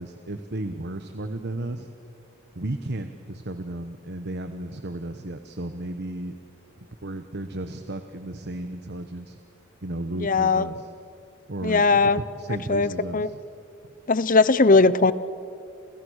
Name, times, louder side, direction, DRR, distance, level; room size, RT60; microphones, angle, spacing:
voice 1, 0.0-1.9 2.5-6.4 7.0-9.4 9.8-10.9 11.5-13.4, right 1 dB, 50° right, 8 dB, 1.2 m, -34 dB
voice 2, 10.2-10.7 11.6-12.2 12.7-13.3 14.1-15.1, left 3 dB, 40° left, 16 dB, 0.8 m, -19 dB
30.0 x 29.0 x 6.5 m, 2.4 s
head